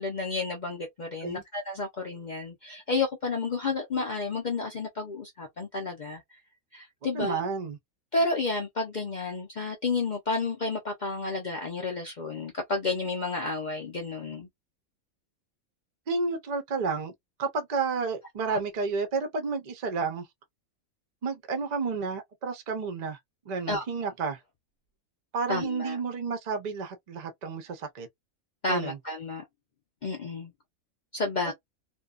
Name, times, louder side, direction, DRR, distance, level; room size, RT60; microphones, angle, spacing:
voice 1, 0.0-6.2 6.7-7.4 8.1-14.5 18.5-18.6 23.7-23.8 25.5-26.0 28.6-29.4 30.0-30.5 31.1-31.5, left 3 dB, 65° left, 0.4 m, -31 dB
voice 2, 7.1-7.8 16.1-17.1 17.4-20.3 21.2-23.2 23.5-24.4 25.3-28.1 28.7-29.0 31.4-31.5, right 4 dB, 50° right, 0.5 m, -31 dB
2.6 x 2.2 x 2.3 m
omnidirectional pair, 1.5 m